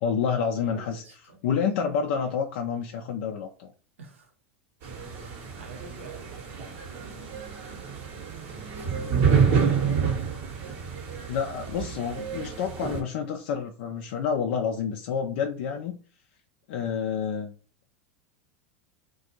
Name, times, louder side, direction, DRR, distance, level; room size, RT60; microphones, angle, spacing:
voice 1, 0.0-3.7 11.3-16.0 16.7-17.5, left 6 dB, 65° left, 0.3 m, -29 dB
voice 2, 0.6-1.4 2.1-2.3 4.0-4.3 4.9-9.8, right 4 dB, 90° right, 0.7 m, -50 dB
sound 1, 4.8-13.0, right 6 dB, 55° right, 1.0 m, -28 dB
2.4 x 2.2 x 2.8 m
hypercardioid pair, 95°, 7 cm